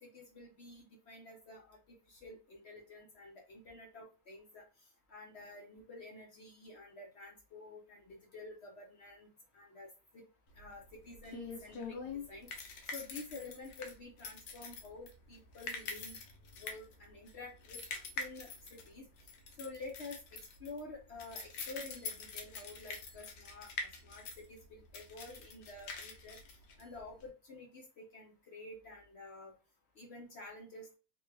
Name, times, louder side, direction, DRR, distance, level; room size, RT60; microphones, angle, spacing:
voice 1, 0.0-4.6 5.1-9.9 10.1-10.2 10.5-16.2 16.6-17.8 18.2-19.1 19.6-26.4 26.8-29.5 30.0-30.9, left 2 dB, 65° left, -1 dB, 0.6 m, -50 dB
sound 1, 10.6-27.3, left 4 dB, 90° left, 1.4 m, -45 dB
3.5 x 2.3 x 3.2 m, 0.32 s
omnidirectional pair, 1.9 m